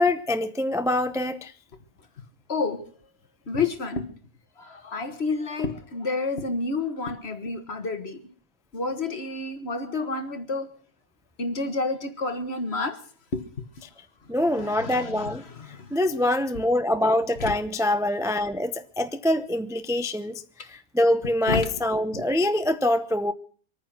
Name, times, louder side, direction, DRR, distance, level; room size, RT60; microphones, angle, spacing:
voice 1, 0.0-1.5 14.3-15.4 15.9-23.3, left 1 dB, 5° right, 9 dB, 0.4 m, -24 dB
voice 2, 2.5-2.9 3.5-4.1 4.6-8.3 8.7-10.7 11.4-13.0 13.3-13.4 14.5-15.9 17.4-17.5 21.5-21.7, left 3 dB, 40° left, 8 dB, 1.7 m, -29 dB
25.0 x 9.4 x 6.0 m, 0.43 s
omnidirectional pair, 1.7 m